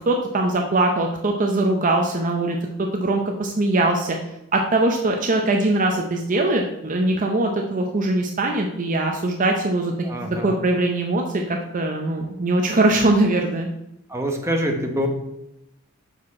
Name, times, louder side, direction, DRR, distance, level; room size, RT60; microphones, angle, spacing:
voice 1, 0.0-4.2 4.5-13.7, right 2 dB, 35° right, 2 dB, 0.6 m, -21 dB
voice 2, 10.0-10.5 14.1-15.1, equal, 15° right, 1 dB, 0.9 m, -25 dB
6.4 x 5.0 x 4.1 m, 0.87 s
head